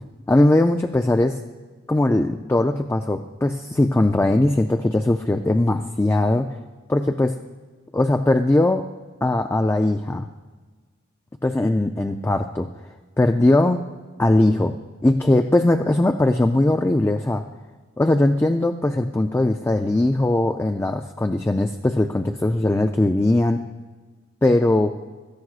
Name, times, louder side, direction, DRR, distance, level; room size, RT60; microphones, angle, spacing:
voice 1, 0.3-1.4 1.9-6.6 6.9-7.4 7.9-8.9 9.2-10.3 11.4-12.7 13.2-13.8 14.2-14.8 15.0-17.4 18.0-23.6 24.4-24.9, left 1 dB, 15° left, 6 dB, 0.3 m, -20 dB
17.0 x 13.0 x 2.4 m, 1.4 s
head